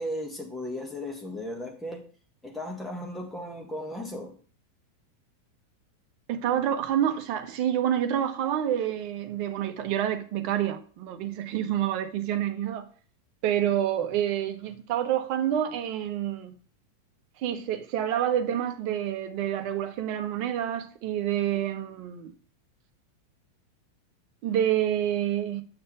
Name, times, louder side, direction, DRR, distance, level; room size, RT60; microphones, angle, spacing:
voice 1, 0.0-2.1 2.4-4.4, left 1 dB, 5° left, 1.9 m, -36 dB
voice 2, 6.3-12.9 13.4-16.5 17.4-22.3 24.4-25.6, right 10 dB, 45° right, 1.1 m, -28 dB
7.9 x 6.7 x 3.5 m
figure-of-eight pair, 90°, 0 cm